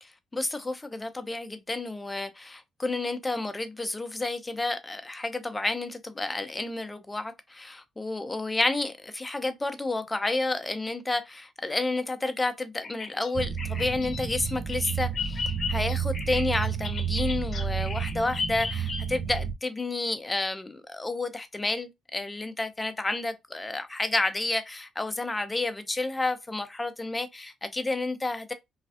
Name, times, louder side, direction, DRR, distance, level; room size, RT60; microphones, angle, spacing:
voice 1, 0.0-28.5, left 2 dB, 15° left, 0.6 m, -30 dB
Bird vocalization bird call bird song, 12.8-19.4, left 5 dB, 45° left, 0.8 m, -36 dB
sound 1, 13.3-19.5, right 7 dB, 40° right, 0.4 m, -31 dB
3.1 x 2.3 x 2.7 m
cardioid pair, 90°, 0 cm